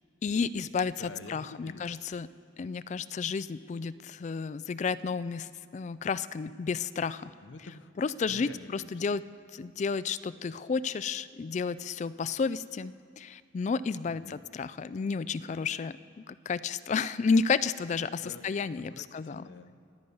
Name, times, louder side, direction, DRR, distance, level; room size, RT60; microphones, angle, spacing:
voice 1, 0.2-2.3 2.6-7.3 8.0-9.2 9.5-15.9 16.3-19.4, left 5 dB, 40° left, 16 dB, 0.3 m, -31 dB
voice 2, 1.0-1.8 7.4-7.9 8.3-9.0 14.0-14.4 18.2-18.5 18.8-19.9, left 3 dB, 90° left, 10 dB, 0.7 m, -48 dB
23.0 x 8.1 x 5.4 m, 2.2 s
head